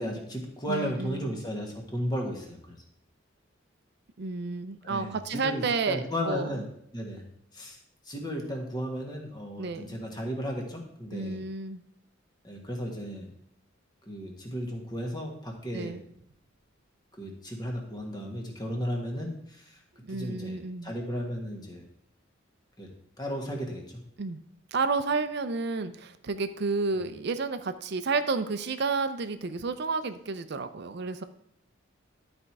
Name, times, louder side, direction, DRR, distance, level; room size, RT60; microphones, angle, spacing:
voice 1, 0.0-2.6 4.8-6.7 6.9-7.2 7.5-7.8 8.0-11.4 12.4-13.3 14.1-15.9 17.2-19.8 20.1-21.8 22.8-22.9 23.2-24.0, equal, 20° left, 1 dB, 1.5 m, -34 dB
voice 2, 0.7-1.4 4.2-6.6 9.6-10.0 11.1-11.8 15.7-16.0 20.0-20.9 24.2-24.4 24.7-31.2, right 4 dB, 55° right, 11 dB, 0.5 m, -31 dB
11.5 x 4.4 x 4.7 m, 0.71 s
head